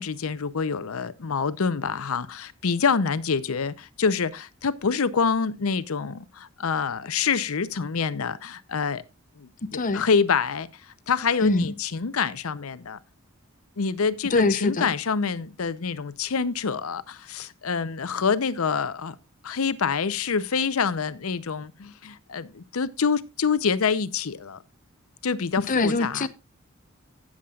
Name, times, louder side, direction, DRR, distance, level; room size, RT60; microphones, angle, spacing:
voice 1, 0.0-9.0 9.4-10.7 11.1-13.0 13.8-19.1 19.4-24.6 25.2-26.3, left 5 dB, 85° left, 0.7 m, -26 dB
voice 2, 9.6-10.0 11.4-11.7 14.3-14.9 25.7-26.3, left 3 dB, 40° left, 0.6 m, -24 dB
16.0 x 7.3 x 2.4 m
head